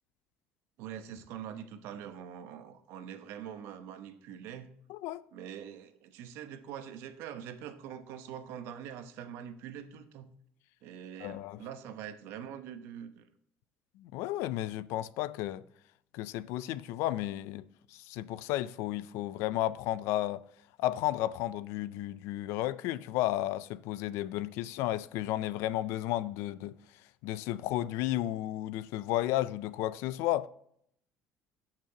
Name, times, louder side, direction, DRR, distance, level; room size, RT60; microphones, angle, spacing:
voice 1, 0.8-4.7 5.3-10.3 10.8-13.3, right 9 dB, 70° right, 0.9 m, -44 dB
voice 2, 4.9-5.2 11.2-11.6 14.0-15.6 16.1-17.6 17.9-20.4 20.8-26.8 27.2-30.5, left 14 dB, 80° left, 0.4 m, -33 dB
14.0 x 5.9 x 2.9 m
cardioid pair, 170°, 4 cm